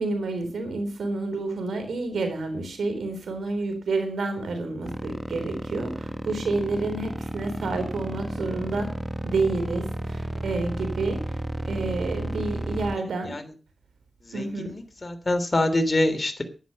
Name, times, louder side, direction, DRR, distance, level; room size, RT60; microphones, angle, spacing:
voice 1, 0.0-8.9 9.2-11.4 11.7-13.4 14.3-14.7, right 3 dB, 90° right, 7 dB, 3.7 m, -29 dB
sound 1, 4.8-13.0, right 1 dB, 5° right, 1.6 m, -32 dB
voice 2, 14.3-16.4, left 1 dB, 40° left, 8 dB, 3.3 m, -25 dB
11.0 x 10.5 x 6.5 m, 0.35 s
cardioid pair, 45°, 0 cm